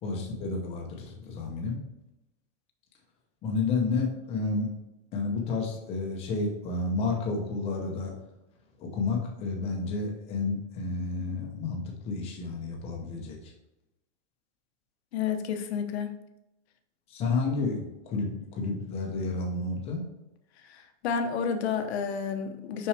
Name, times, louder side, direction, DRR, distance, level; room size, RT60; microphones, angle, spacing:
voice 1, 0.0-1.8 3.4-4.7 5.1-8.1 8.8-13.5 17.1-20.0, left 3 dB, 15° left, 0 dB, 0.8 m, -31 dB
voice 2, 15.1-16.1 20.7-22.9, left 7 dB, 60° left, 6 dB, 0.9 m, -30 dB
5.9 x 5.4 x 3.4 m, 0.91 s
supercardioid pair, 180°, 37 cm